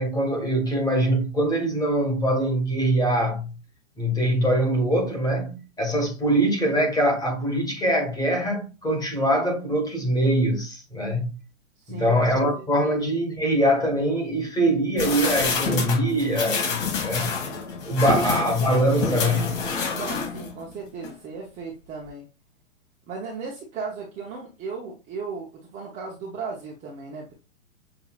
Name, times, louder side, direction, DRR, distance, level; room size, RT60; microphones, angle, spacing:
voice 1, 0.0-3.5 4.0-11.3 11.9-17.3 17.8-19.6, right 1 dB, 10° left, 1.5 m, -23 dB
voice 2, 11.8-13.0 18.1-19.0 19.9-22.3 23.1-27.3, right 4 dB, 15° right, 0.7 m, -36 dB
sound 1, 15.0-20.6 21.0-21.1, left 5 dB, 40° left, 1.6 m, -28 dB
6.8 x 2.7 x 2.4 m
hypercardioid pair, 140°, 41 cm